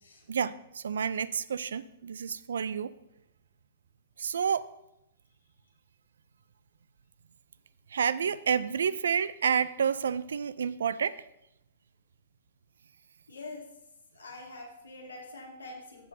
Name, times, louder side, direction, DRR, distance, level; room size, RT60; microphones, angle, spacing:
voice 1, 0.3-2.9 4.2-4.7 7.9-11.2, right 7 dB, 70° right, 17 dB, 0.4 m, -29 dB
voice 2, 13.3-13.7 14.1-16.1, left 2 dB, 85° left, 0 dB, 2.1 m, -45 dB
14.5 x 6.2 x 2.7 m, 0.85 s
figure-of-eight pair, 110°, 0 cm